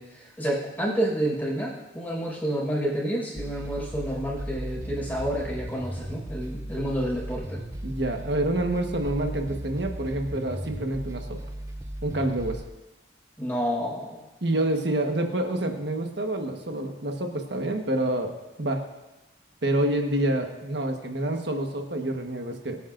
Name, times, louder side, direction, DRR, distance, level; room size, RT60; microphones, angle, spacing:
voice 1, 0.0-7.6 13.4-14.3, right 1 dB, 10° left, -5 dB, 5.4 m, -29 dB
sound 1, 3.4-12.6, right 1 dB, 15° right, 0.6 m, -36 dB
voice 2, 7.8-11.4 12.0-12.6 14.4-18.3 18.6-18.8 19.6-22.8, right 1 dB, 65° right, 3 dB, 1.4 m, -27 dB
24.5 x 9.3 x 2.6 m, 1.0 s
head